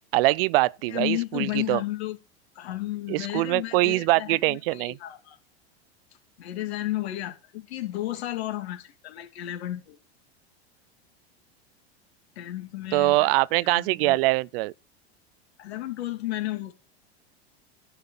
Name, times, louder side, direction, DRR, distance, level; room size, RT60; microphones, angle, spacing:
voice 1, 0.1-1.8 3.1-5.0 12.9-14.7, right 20 dB, 60° right, 0.4 m, -23 dB
voice 2, 0.9-2.2 2.6-5.4 6.4-10.0 12.4-13.3 13.7-14.2 15.6-16.7, left 15 dB, 75° left, 2.6 m, -33 dB
11.0 x 5.4 x 7.1 m
hypercardioid pair, 105°, 32 cm